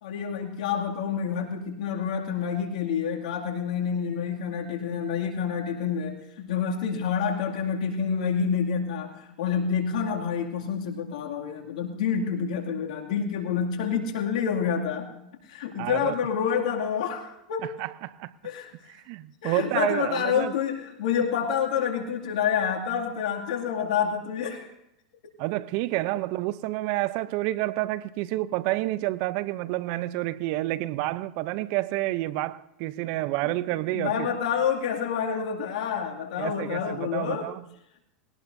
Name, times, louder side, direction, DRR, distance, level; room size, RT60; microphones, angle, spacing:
voice 1, 0.0-15.1 15.5-17.6 18.4-18.7 19.4-24.7 33.1-33.5 33.9-37.4, left 7 dB, 70° left, 2.4 m, -28 dB
voice 2, 15.8-16.2 17.8-18.3 18.9-20.5 25.4-34.3 36.4-37.6, right 17 dB, 55° right, 0.6 m, -29 dB
20.5 x 18.0 x 2.7 m
hypercardioid pair, 110°, 4 cm